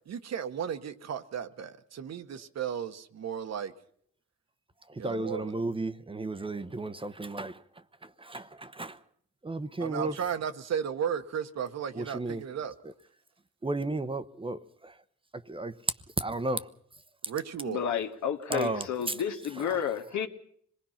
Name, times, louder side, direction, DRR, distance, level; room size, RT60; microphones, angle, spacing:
voice 1, 0.1-3.7 5.0-5.5 9.8-12.7 17.3-17.8, right 8 dB, 60° right, 1.3 m, -34 dB
voice 2, 5.0-7.6 8.2-9.0 9.4-10.2 11.9-12.4 13.6-14.9 15.5-15.7 16.2-16.7 18.5-18.9, right 2 dB, 15° right, 1.0 m, -33 dB
voice 3, 17.7-20.3, left 8 dB, 70° left, 2.0 m, -31 dB
25.5 x 19.5 x 5.8 m
cardioid pair, 90°, 30 cm